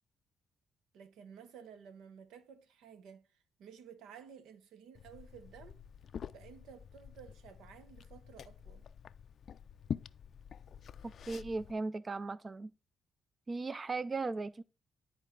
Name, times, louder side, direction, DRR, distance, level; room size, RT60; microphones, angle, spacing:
voice 1, 0.9-3.3 3.6-5.8 6.3-8.9, right 7 dB, 85° right, 0.9 m, -54 dB
Liquid, 4.9-11.7, left 8 dB, 55° left, 0.3 m, -47 dB
voice 2, 11.0-12.7 13.5-14.6, right 3 dB, 30° right, 0.3 m, -37 dB
11.0 x 4.5 x 3.8 m
cardioid pair, 90°, 0 cm